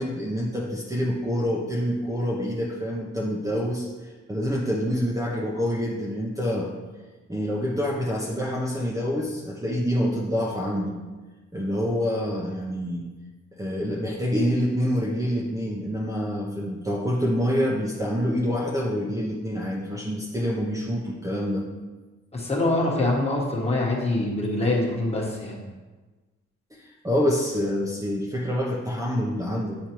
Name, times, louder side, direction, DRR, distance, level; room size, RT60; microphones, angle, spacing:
voice 1, 0.0-3.9 4.3-6.7 7.3-11.0 11.5-13.1 13.6-21.7 26.7-29.8, equal, 10° right, -4 dB, 0.8 m, -26 dB
voice 2, 22.3-25.6, left 2 dB, 20° left, -2 dB, 1.3 m, -24 dB
8.5 x 4.3 x 3.0 m, 1.3 s
cardioid pair, 110°, 29 cm